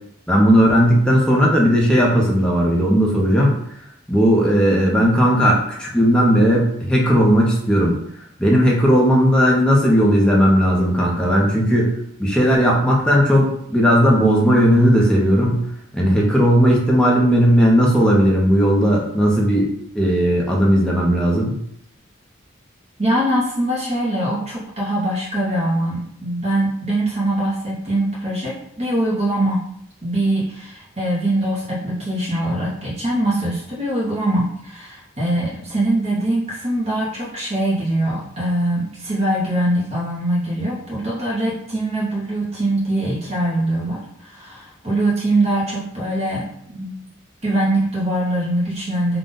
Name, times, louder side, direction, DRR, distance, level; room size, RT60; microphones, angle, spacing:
voice 1, 0.3-3.5 4.1-8.0 8.4-11.9 12.2-15.6 15.9-21.6, equal, 5° left, -3 dB, 0.8 m, -16 dB
voice 2, 23.0-29.6 30.0-47.0 47.4-49.2, right 1 dB, 35° right, -6 dB, 0.9 m, -22 dB
3.8 x 2.4 x 3.8 m, 0.71 s
head